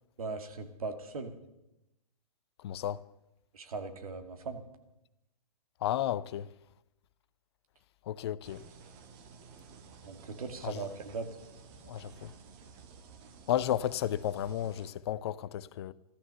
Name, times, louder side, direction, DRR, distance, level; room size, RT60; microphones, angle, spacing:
voice 1, 0.2-1.3 3.5-4.6 10.0-11.3, right 4 dB, 60° right, 2.2 m, -39 dB
voice 2, 2.6-3.0 5.8-6.5 8.0-8.6 10.6-10.9 11.7-12.3 13.5-15.9, left 11 dB, 40° left, 0.7 m, -33 dB
sound 1, 8.4-14.9, right 5 dB, 30° right, 1.6 m, -53 dB
15.0 x 13.5 x 6.9 m
figure-of-eight pair, 125°, 20 cm